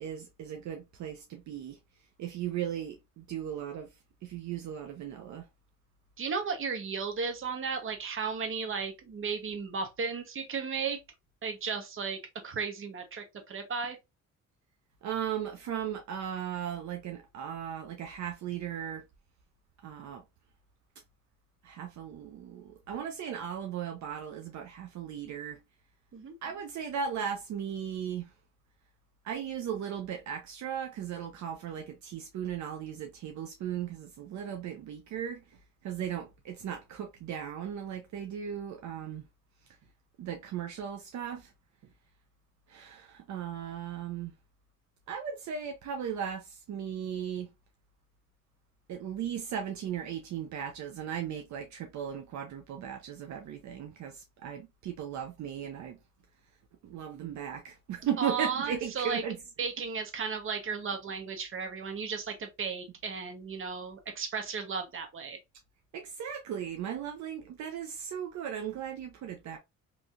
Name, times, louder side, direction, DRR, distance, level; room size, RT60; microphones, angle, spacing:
voice 1, 0.0-1.8 2.2-3.9 4.2-5.5 15.0-19.0 19.8-20.2 21.6-25.6 26.4-28.3 29.2-35.4 35.8-39.2 40.2-41.5 42.7-44.3 45.1-47.5 48.9-56.0 56.8-59.4 65.9-69.6, right 8 dB, 70° right, 0.7 m, -37 dB
voice 2, 6.2-11.0 11.4-14.0 26.1-26.4 58.0-59.2 59.6-65.4, right 5 dB, 45° right, 1.0 m, -35 dB
3.1 x 2.7 x 2.5 m
cardioid pair, 90°, 30 cm